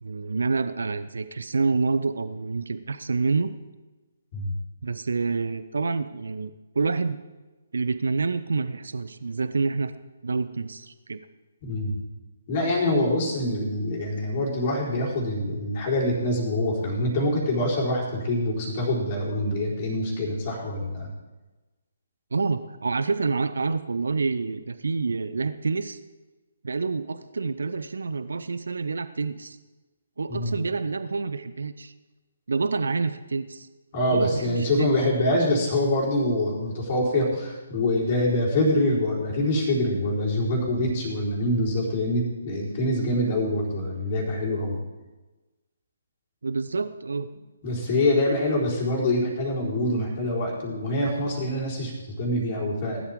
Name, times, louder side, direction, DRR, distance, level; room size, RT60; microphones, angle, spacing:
voice 1, 0.0-3.5 4.8-7.2 7.7-9.9 10.2-11.2 22.3-26.0 26.6-29.6 30.2-31.9 32.5-33.7 34.1-34.9 46.4-47.3, right 4 dB, 60° right, 12 dB, 0.7 m, -27 dB
voice 2, 11.6-11.9 12.5-21.1 30.3-30.5 33.9-44.8 47.6-53.0, left 1 dB, 35° left, -3 dB, 4.3 m, -25 dB
19.5 x 12.0 x 3.7 m, 1.2 s
figure-of-eight pair, 135°, 0 cm